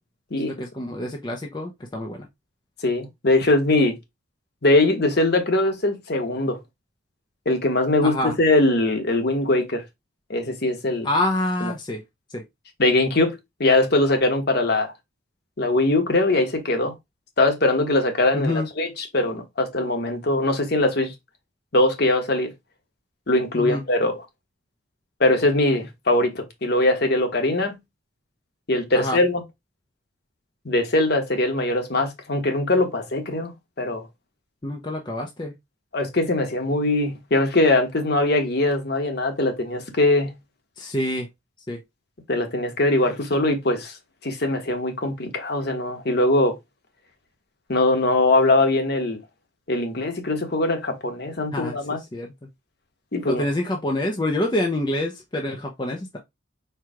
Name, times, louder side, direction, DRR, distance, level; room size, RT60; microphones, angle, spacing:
voice 1, 0.4-2.3 8.0-8.4 11.0-12.0 12.3-12.4 18.3-18.7 23.5-23.8 28.9-29.2 34.6-35.5 40.8-41.3 41.7-41.8 51.5-51.8 52.1-52.5 53.2-56.2, left 1 dB, 20° left, 0.5 m, -27 dB
voice 2, 2.8-3.9 4.6-6.6 7.4-9.8 10.3-11.1 12.8-14.9 15.6-16.9 17.4-18.9 19.1-21.1 21.7-22.5 23.3-24.1 25.2-27.8 28.7-29.4 30.6-33.5 33.8-34.0 35.9-40.3 42.3-44.0 44.2-46.6 47.7-49.2 49.7-52.0 53.1-53.4, left 2 dB, 50° left, 1.1 m, -21 dB
4.6 x 2.3 x 4.8 m
head